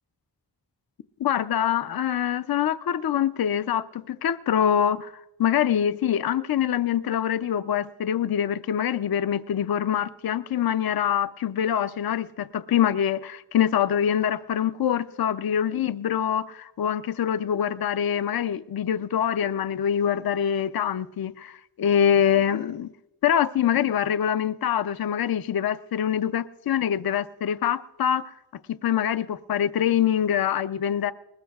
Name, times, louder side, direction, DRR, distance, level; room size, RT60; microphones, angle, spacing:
voice 1, 1.2-5.1 5.4-22.9 23.2-28.2 28.8-31.1, left 9 dB, 60° left, 0.5 m, -24 dB
20.5 x 20.0 x 2.3 m
wide cardioid pair, 85°, 42 cm